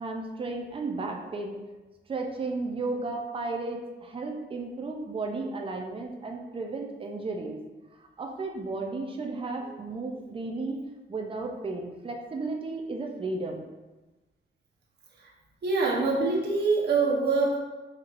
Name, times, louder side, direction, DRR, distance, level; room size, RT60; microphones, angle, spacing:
voice 1, 0.0-1.6 2.1-7.6 8.2-10.8 11.1-13.6, right 3 dB, 25° right, 2 dB, 0.5 m, -34 dB
voice 2, 15.6-17.6, right 3 dB, 55° right, -3 dB, 1.0 m, -24 dB
4.6 x 4.4 x 2.5 m, 1.1 s
wide cardioid pair, 170°, 20 cm